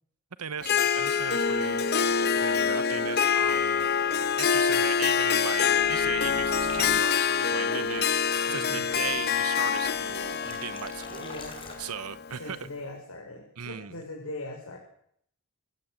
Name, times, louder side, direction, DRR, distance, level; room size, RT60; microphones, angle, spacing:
voice 1, 0.4-1.9 2.3-3.9 4.4-11.4 11.8-12.6 13.6-14.0, right 7 dB, 85° right, 0.9 m, -37 dB
Harp, 0.6-12.5, left 7 dB, 45° left, 1.0 m, -26 dB
sound 1, 0.6-0.7 1.0-1.1 1.4-1.5 1.8-1.9 2.2-3.5 3.8-7.0, right 2 dB, 65° right, 1.7 m, -43 dB
sound 2, 6.6-7.3 7.8-8.0 8.9-11.7, left 3 dB, 20° left, 5.2 m, -46 dB
voice 2, 8.4-8.9 11.2-11.6 12.4-14.8, left 2 dB, 75° left, 5.6 m, -40 dB
29.0 x 15.5 x 7.8 m
head